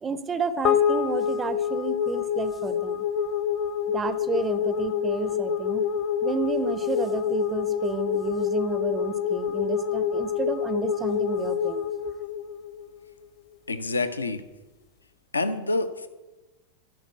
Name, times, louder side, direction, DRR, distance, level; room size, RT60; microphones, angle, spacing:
voice 1, 0.0-3.0 3.9-5.9 6.2-11.8, right 5 dB, 20° right, 12 dB, 0.6 m, -31 dB
sound 1, 0.6-13.2, left 8 dB, 35° left, 0.8 m, -27 dB
voice 2, 13.7-14.4 15.3-16.1, left 2 dB, 80° left, 10 dB, 0.6 m, -27 dB
11.0 x 4.3 x 8.0 m, 1.1 s
figure-of-eight pair, 90°, 0 cm